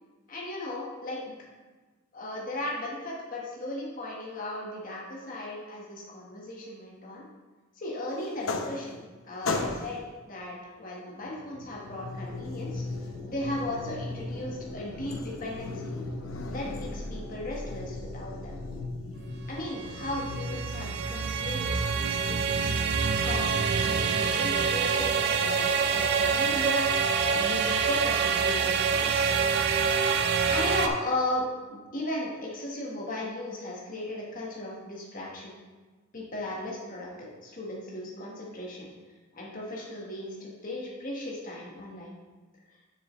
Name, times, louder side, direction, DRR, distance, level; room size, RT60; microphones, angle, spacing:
voice 1, 0.3-1.3 2.1-7.3 7.8-10.0 10.3-12.8 13.3-16.0 16.5-18.5 19.5-22.7 23.2-29.3 30.5-35.6 36.1-38.9 39.3-42.2, left 1 dB, 40° left, -3 dB, 1.3 m, -36 dB
sound 1, 8.2-9.1 9.4-10.1 11.2-20.6, left 3 dB, 90° left, 0.7 m, -36 dB
sound 2, 12.2-18.9, left 1 dB, 35° right, 0.8 m, -47 dB
sound 3, 19.5-30.9, right 5 dB, 55° right, 0.5 m, -26 dB
7.1 x 6.9 x 3.1 m, 1.2 s
head